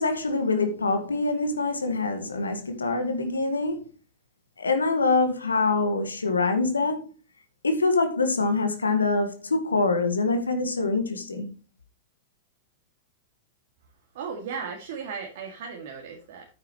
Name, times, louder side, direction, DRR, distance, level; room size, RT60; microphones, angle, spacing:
voice 1, 0.0-3.8 4.6-7.1 7.6-11.5, left 3 dB, 85° left, 1.6 m, -25 dB
voice 2, 14.1-16.5, right 6 dB, 60° right, 2.2 m, -36 dB
9.3 x 8.6 x 3.1 m
figure-of-eight pair, 100°, 0 cm